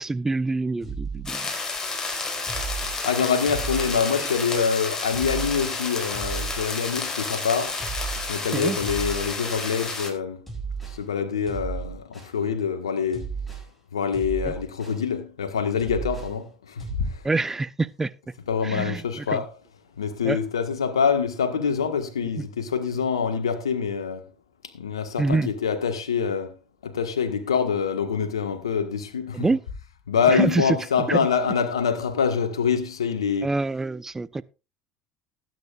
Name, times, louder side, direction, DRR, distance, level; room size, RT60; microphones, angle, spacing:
voice 1, 0.0-1.5 8.5-8.8 14.4-14.5 17.2-18.1 18.6-19.4 20.2-20.4 22.4-22.5 25.2-25.5 29.3-29.6 30.3-30.6 31.1-31.2 33.4-34.4, right 3 dB, 15° right, 0.7 m, -26 dB
sound 1, 0.8-1.7 2.5-3.0 3.5-4.4 5.1-5.7 6.1-7.0 7.8-8.4 8.8-9.7 10.5-11.0 11.5-12.4 13.1-13.7 14.1-15.1 15.8-16.4 16.8-17.1, right 5 dB, 5° left, 7.2 m, -34 dB
sound 2, 1.3-10.1, left 3 dB, 20° left, 4.3 m, -31 dB
voice 2, 3.0-7.8 8.3-10.4 10.8-13.3 13.9-17.2 18.5-19.5 20.0-24.2 24.7-26.6 26.8-29.5 30.1-33.5, left 6 dB, 80° left, 1.4 m, -25 dB
19.5 x 9.5 x 2.4 m
figure-of-eight pair, 65°, 3 cm